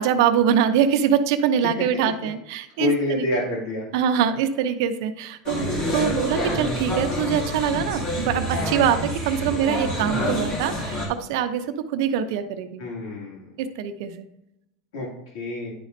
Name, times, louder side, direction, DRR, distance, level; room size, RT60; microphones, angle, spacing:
voice 1, 0.0-3.3 3.9-12.8 13.6-14.3, right 8 dB, 65° right, 9 dB, 0.6 m, -23 dB
voice 2, 2.8-3.9 5.9-6.1 12.8-13.4 14.9-15.1 15.3-15.7, left 2 dB, 90° left, -4 dB, 2.4 m, -27 dB
sound 1, 5.5-11.1, equal, 35° left, 2.3 m, -27 dB
10.0 x 5.2 x 2.6 m, 0.84 s
supercardioid pair, 155°, 2 cm